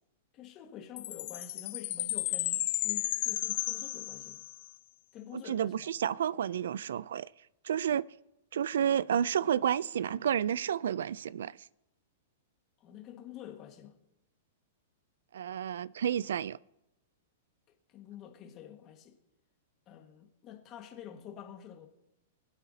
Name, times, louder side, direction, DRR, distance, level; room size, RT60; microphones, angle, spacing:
voice 1, 0.3-4.4 5.1-5.9 12.8-13.9 17.9-19.2 19.9-21.9, left 9 dB, 25° left, 1.6 m, -48 dB
Chime, 1.0-4.7, left 17 dB, 45° left, 0.5 m, -33 dB
voice 2, 5.3-7.3 7.6-8.1 8.5-11.6 15.3-16.6, right 9 dB, 80° right, 0.3 m, -30 dB
24.0 x 8.1 x 2.8 m
supercardioid pair, 160°, 0 cm